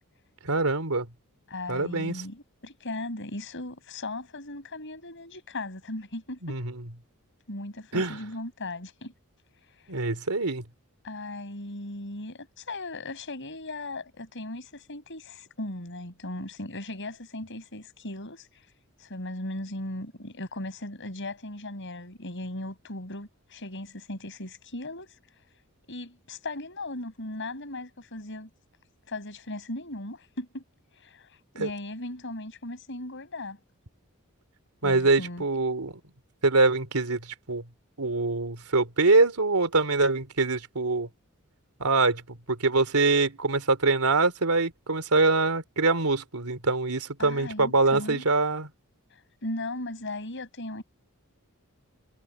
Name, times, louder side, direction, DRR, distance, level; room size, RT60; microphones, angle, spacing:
voice 1, 0.4-1.1 1.7-2.2 6.4-6.8 7.9-8.2 9.9-10.6 31.6-31.7 34.8-36.0 36.4-37.2 37.5-37.6 38.0-41.1 41.8-48.7, right 3 dB, 85° right, 3.1 m, -24 dB
voice 2, 1.5-6.6 7.5-9.1 9.8-9.9 11.0-18.7 19.0-25.2 25.9-28.5 29.1-30.6 31.0-31.3 31.5-33.6 34.8-35.4 47.2-48.3 49.4-50.8, left 2 dB, 60° left, 5.5 m, -37 dB
head